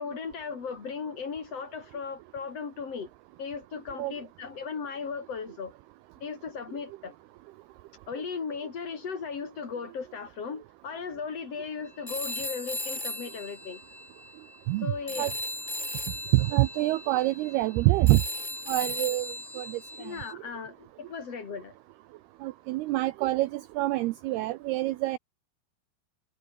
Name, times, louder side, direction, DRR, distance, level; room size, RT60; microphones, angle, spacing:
voice 1, 0.0-3.1 3.4-5.7 6.2-7.1 8.1-13.8 14.8-15.3 20.0-21.7, left 5 dB, 40° left, 3.5 m, -37 dB
Telephone, 12.1-14.8 15.1-20.3, left 1 dB, 10° left, 5.5 m, -37 dB
voice 2, 14.7-15.3 16.3-18.2 18.7-20.1 22.4-25.2, right 18 dB, 80° right, 2.4 m, -26 dB
omnidirectional pair, 5.2 m